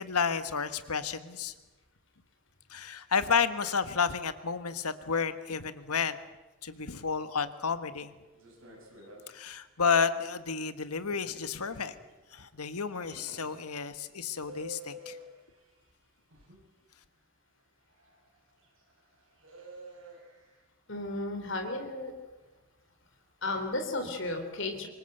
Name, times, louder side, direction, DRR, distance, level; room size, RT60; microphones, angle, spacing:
voice 1, 0.0-1.5 2.7-6.2 6.6-8.1 9.3-11.9 12.3-15.2, left 6 dB, 90° left, 12 dB, 1.5 m, -31 dB
sound 1, 8.3-9.3 9.8-10.4 11.0-13.8 14.1-15.4 16.3-16.6 17.9-20.6 21.2-21.3 23.4-23.6, equal, 65° right, 6.5 m, -50 dB
voice 2, 20.9-22.1 23.4-24.9, left 2 dB, 55° left, 6 dB, 3.7 m, -34 dB
24.5 x 22.0 x 8.0 m, 1.2 s
head